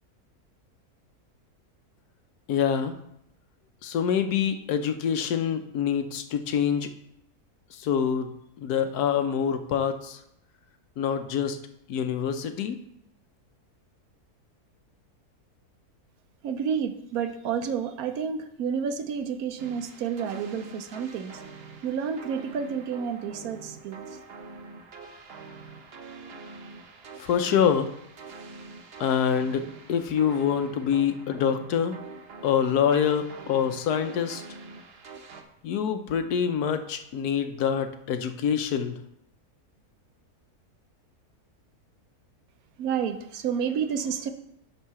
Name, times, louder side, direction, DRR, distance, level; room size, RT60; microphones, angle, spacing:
voice 1, 2.5-2.9 3.8-6.9 7.7-10.2 11.0-11.6 11.9-12.8 27.2-27.9 29.0-32.0 32.4-34.4 35.6-39.0, left 8 dB, 80° left, 8 dB, 1.3 m, -26 dB
voice 2, 16.4-21.4 21.8-24.0 42.8-44.3, right 7 dB, 70° right, 9 dB, 1.2 m, -30 dB
sound 1, 19.6-35.4, right 4 dB, 50° right, 0.9 m, -45 dB
11.0 x 3.9 x 5.7 m, 0.76 s
omnidirectional pair, 1.6 m